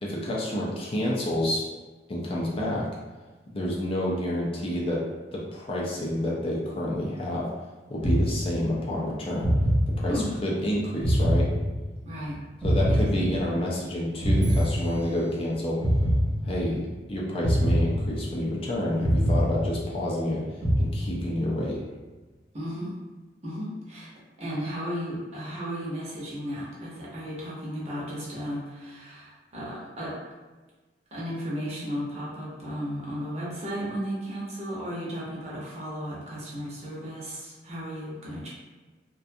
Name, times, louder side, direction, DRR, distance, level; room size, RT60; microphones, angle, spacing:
voice 1, 0.0-1.6 2.1-2.9 3.5-5.0 5.3-7.5 7.9-9.5 10.0-11.5 12.6-15.8 16.4-16.8 17.1-20.4 20.8-21.8, left 1 dB, 30° left, -4 dB, 0.4 m, -29 dB
sound 1, 8.0-8.9 9.4-10.5 11.0-12.2 12.6-13.8 14.2-15.4 15.8-16.9 17.4-18.6 19.0-20.2 20.6-21.5, equal, 5° right, 0.8 m, -24 dB
voice 2, 12.0-12.4 12.9-13.1 22.5-22.9 23.4-30.2 31.1-38.5, equal, 35° right, -6 dB, 0.8 m, -34 dB
2.4 x 2.2 x 2.6 m, 1.3 s
head